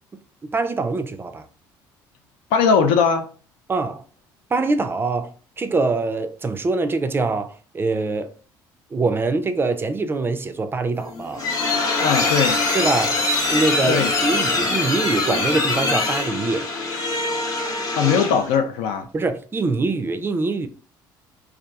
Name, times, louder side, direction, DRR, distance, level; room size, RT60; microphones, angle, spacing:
voice 1, 0.5-1.5 3.7-4.0 4.5-8.3 8.9-11.4 12.7-13.2 13.5-16.7 19.1-20.7, right 3 dB, 25° right, 0.3 m, -24 dB
voice 2, 2.5-3.3 12.0-12.6 13.9-14.1 18.0-19.1, left 6 dB, 85° left, 0.4 m, -19 dB
sound 1, 11.0-18.5, left 3 dB, 40° left, 0.8 m, -23 dB
2.8 x 2.3 x 2.3 m
supercardioid pair, 85°, 9 cm